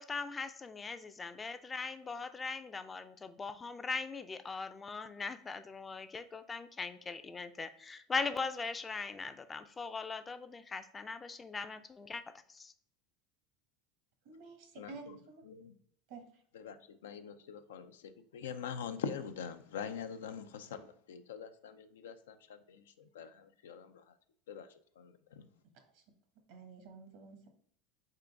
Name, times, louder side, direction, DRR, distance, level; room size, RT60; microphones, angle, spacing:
voice 1, 0.0-12.2 12.5-12.7, left 4 dB, 20° left, 10 dB, 0.4 m, -40 dB
voice 2, 14.2-15.4 16.1-16.3 25.9-26.0 26.5-27.5, right 4 dB, 70° right, 5 dB, 1.1 m, -51 dB
voice 3, 14.8-15.2 15.4-15.8 16.5-24.2 24.5-25.5, left 7 dB, 90° left, 9 dB, 0.4 m, -44 dB
3.8 x 3.7 x 3.3 m, 0.64 s
supercardioid pair, 100°, 0 cm